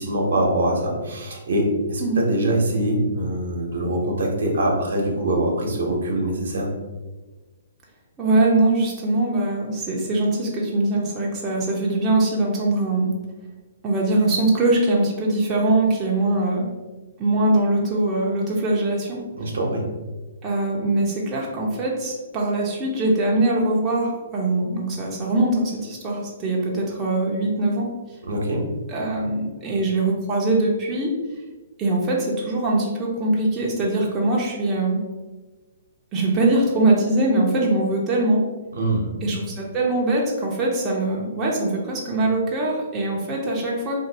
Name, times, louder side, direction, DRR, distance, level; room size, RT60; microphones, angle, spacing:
voice 1, 0.0-6.7 19.4-19.8 28.3-28.6 38.8-39.1, right 1 dB, 75° right, 0 dB, 0.9 m, -23 dB
voice 2, 8.2-13.1 13.8-16.7 17.2-19.2 20.4-27.9 28.9-31.1 31.8-35.0 36.1-38.4 39.2-44.0, right 2 dB, 20° right, -3 dB, 0.7 m, -22 dB
2.6 x 2.5 x 4.0 m, 1.2 s
hypercardioid pair, 140°, 0 cm